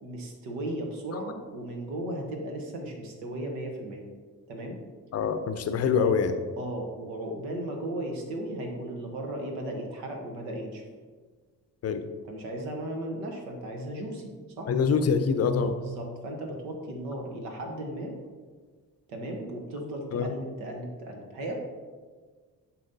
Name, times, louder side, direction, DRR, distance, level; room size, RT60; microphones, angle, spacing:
voice 1, 0.0-4.1 4.5-4.8 5.7-6.1 6.6-10.9 12.2-14.7 15.8-18.1 19.1-21.6, right 1 dB, 65° right, 2 dB, 1.1 m, -36 dB
voice 2, 5.1-6.3 11.8-12.0 14.7-15.8 20.1-20.3, left 6 dB, 30° left, 9 dB, 0.6 m, -25 dB
11.5 x 4.3 x 2.7 m, 1.5 s
figure-of-eight pair, 40°, 48 cm